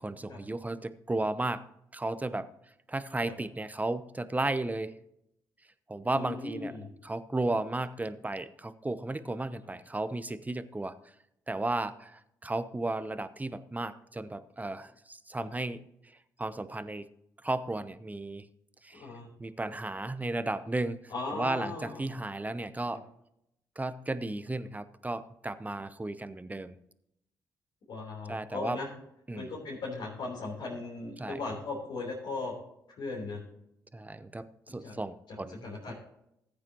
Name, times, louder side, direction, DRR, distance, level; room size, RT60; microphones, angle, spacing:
voice 1, 0.0-1.6 1.9-2.5 2.9-4.9 5.9-6.7 7.0-10.9 11.5-15.8 16.4-17.0 17.4-18.5 18.8-19.0 19.4-23.0 23.8-26.7 28.3-28.8 29.3-29.5 31.2-31.4 33.9-35.9, right 2 dB, 20° right, 13 dB, 0.7 m, -34 dB
voice 2, 6.1-6.9 9.7-9.8 18.9-19.3 21.1-22.0 27.9-28.9 29.3-32.5 33.0-33.4 34.8-34.9 35.6-35.9, left 3 dB, 70° left, -6 dB, 3.6 m, -37 dB
15.0 x 8.6 x 3.0 m, 0.79 s
hypercardioid pair, 45°, 9 cm